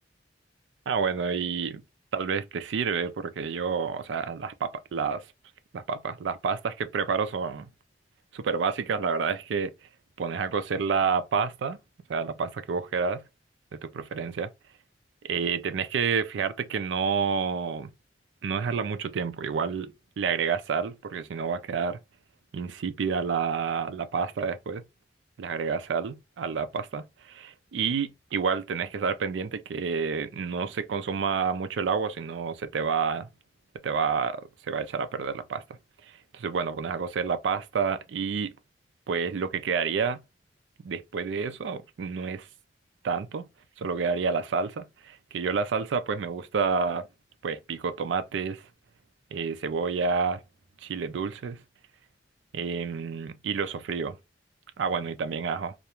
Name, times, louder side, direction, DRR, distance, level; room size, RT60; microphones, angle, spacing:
voice 1, 0.9-1.8 2.1-5.2 5.7-7.7 8.3-9.7 10.2-11.8 12.1-13.2 13.8-14.5 15.2-17.9 18.4-22.0 22.5-24.8 25.4-33.3 33.8-35.6 36.3-38.5 39.1-40.2 40.8-42.5 43.0-43.5 43.8-47.1 47.4-48.6 49.3-50.4 50.8-51.6 52.5-54.2 54.8-55.7, right 5 dB, 90° right, 0.4 m, -29 dB
2.4 x 2.1 x 2.9 m
head